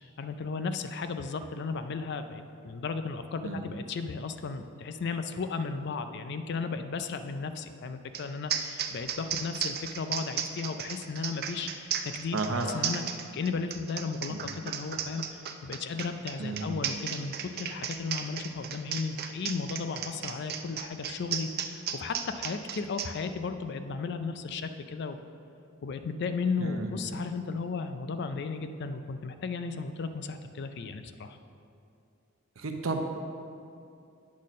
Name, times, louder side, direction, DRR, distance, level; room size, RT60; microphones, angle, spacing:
voice 1, 0.2-12.4 12.7-25.2 25.8-31.4, left 4 dB, 55° left, 9 dB, 0.4 m, -35 dB
sound 1, 8.1-8.2 8.5-23.1, right 8 dB, 50° right, 0.5 m, -34 dB
voice 2, 12.3-12.7 14.3-14.4 16.4-16.8 26.6-26.9 32.6-33.0, right 3 dB, 85° right, 4 dB, 0.8 m, -32 dB
8.4 x 4.2 x 6.2 m, 2.5 s
head